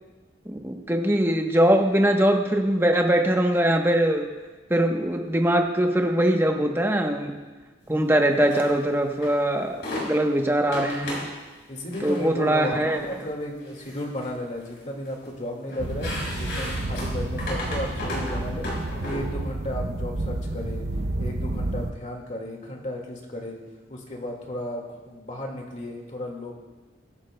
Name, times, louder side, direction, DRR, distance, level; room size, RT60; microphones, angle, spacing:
voice 1, 0.4-4.3 4.7-7.4 7.9-11.3 12.0-13.0, right 1 dB, 10° right, 3 dB, 0.9 m, -22 dB
sound 1, 8.4-8.7 9.2-9.3 9.7-10.1 10.7-11.3 11.8-12.2 12.9-13.1 13.6-14.3 14.6-15.3 15.7-19.2, left 1 dB, 55° left, 4.6 m, -34 dB
voice 2, 11.7-16.1 16.4-18.7 19.0-20.9 21.2-23.6 23.9-26.5, left 1 dB, 40° left, 1 dB, 1.9 m, -34 dB
sound 2, 15.8-21.9, right 2 dB, 55° right, 0.6 m, -30 dB
22.0 x 11.0 x 2.2 m, 1.2 s
head